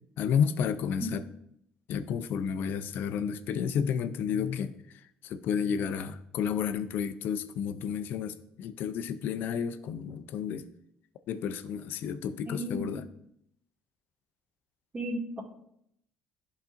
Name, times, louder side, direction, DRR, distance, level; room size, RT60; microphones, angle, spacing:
voice 1, 0.2-1.2 1.9-4.8 5.2-10.7 11.3-13.0, left 7 dB, 70° left, 12 dB, 0.5 m, -31 dB
voice 2, 12.5-12.9 14.9-15.4, right 1 dB, 30° right, -2 dB, 2.1 m, -34 dB
11.5 x 4.1 x 2.5 m, 0.74 s
supercardioid pair, 75°, 4 cm